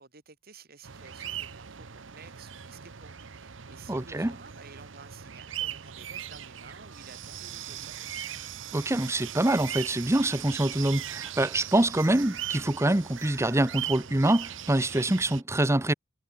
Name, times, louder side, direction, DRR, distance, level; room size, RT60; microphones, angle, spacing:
voice 1, 0.0-8.0, right 4 dB, 55° right, 3.5 m, -52 dB
sound 1, 0.8-15.4, right 10 dB, 85° right, 1.0 m, -39 dB
voice 2, 3.9-4.3 8.7-15.9, right 1 dB, 15° right, 0.8 m, -25 dB
head